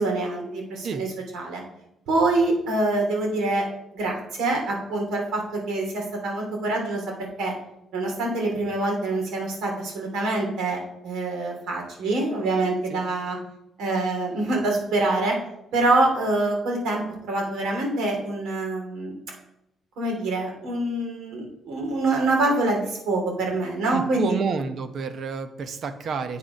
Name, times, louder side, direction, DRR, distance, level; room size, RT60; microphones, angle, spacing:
voice 1, 0.0-1.6 2.1-3.6 3.9-7.5 7.9-10.8 11.0-13.4 13.8-15.4 15.7-19.1 20.0-24.4, right 2 dB, 90° right, 0 dB, 3.1 m, -25 dB
voice 2, 23.9-26.4, right 5 dB, 45° right, 9 dB, 0.8 m, -29 dB
8.2 x 5.2 x 5.7 m, 0.83 s
cardioid pair, 160°, 0 cm